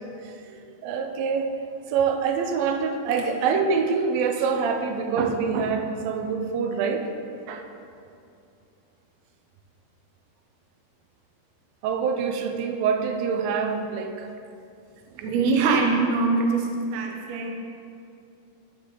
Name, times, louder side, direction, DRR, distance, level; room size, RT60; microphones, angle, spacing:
voice 1, 0.8-1.5 1.9-7.1 7.5-7.7 11.8-14.3, right 5 dB, 90° right, 5 dB, 2.5 m, -25 dB
voice 2, 15.2-17.5, right 4 dB, 70° right, 2 dB, 1.8 m, -23 dB
11.5 x 7.0 x 3.8 m, 2.5 s
omnidirectional pair, 4.1 m